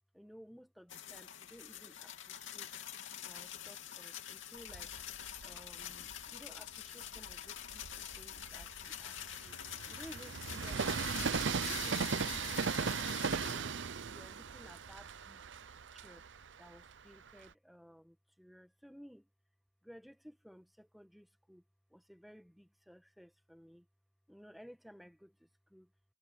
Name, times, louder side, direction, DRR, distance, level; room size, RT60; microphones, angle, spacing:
voice 1, 0.1-2.7 3.2-4.9 5.4-9.6 9.9-11.1 14.0-15.4 15.9-16.2 16.6-19.3 19.8-21.6 21.9-23.9 24.3-25.9, equal, ahead, 1.4 m, -57 dB
sound 1, 0.9-13.6, left 10 dB, 65° left, 2.8 m, -46 dB
Train, 4.6-6.3 6.9-17.5, right 5 dB, 60° right, 0.7 m, -38 dB
head